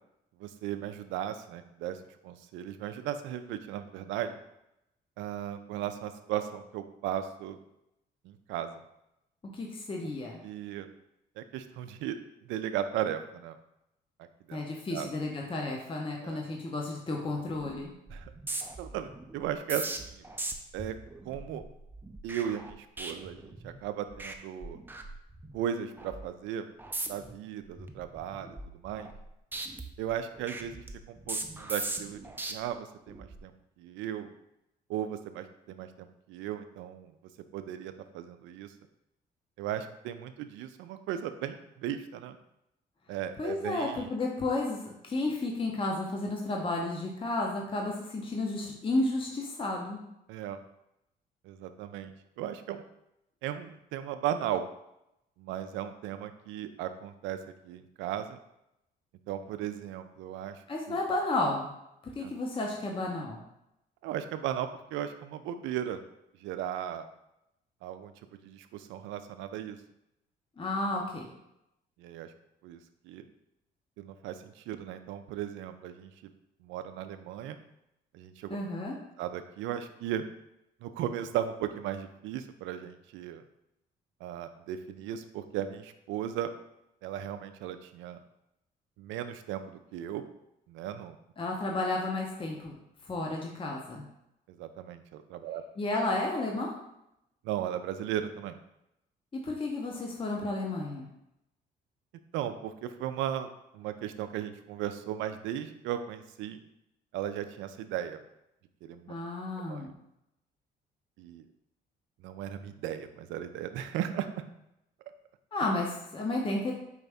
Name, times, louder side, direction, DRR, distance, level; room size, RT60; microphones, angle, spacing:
voice 1, 0.4-4.4 5.2-7.6 8.2-8.7 10.4-10.9 11.4-12.2 12.4-13.6 14.5-14.6 14.9-15.1 16.2-16.4 18.1-18.3 18.8-20.2 20.7-20.9 21.2-21.6 22.2-24.8 25.5-26.7 27.1-29.1 30.0-32.2 32.5-34.3 34.9-37.1 37.5-38.7 39.6-42.4 43.1-44.0 50.3-50.6 51.4-52.8 53.4-54.7 55.4-57.4 57.6-58.4 59.3-61.0 62.2-62.3 64.0-66.0 66.4-67.1 67.8-68.1 68.4-69.8 72.0-72.3 72.6-72.8 73.0-73.2 74.0-76.3 76.6-77.6 78.1-78.6 79.2-80.2 80.8-83.4 84.2-86.5 87.0-88.2 89.0-90.3 90.7-91.2 94.6-95.6 97.4-98.6 102.3-106.6 107.1-108.2 108.8-109.1 109.7-109.9 111.2-111.5 112.2-114.3, right 10 dB, 85° right, 9 dB, 0.4 m, -36 dB
voice 2, 9.5-10.4 14.5-17.9 43.4-50.0 60.7-61.7 62.2-63.4 70.6-71.2 78.5-79.0 91.4-92.7 93.1-94.0 95.8-96.7 99.3-101.1 109.1-109.9 115.5-116.7, left 2 dB, 30° left, -1 dB, 0.8 m, -32 dB
sound 1, 17.5-17.8 18.1-23.8 24.1-24.4 24.6-25.6 26.0-26.3 26.8-27.3 27.8-29.3 29.5-32.5 33.1-33.4, right 2 dB, 10° right, 0.5 m, -39 dB
4.8 x 2.6 x 3.4 m, 0.84 s
supercardioid pair, 75°, 19 cm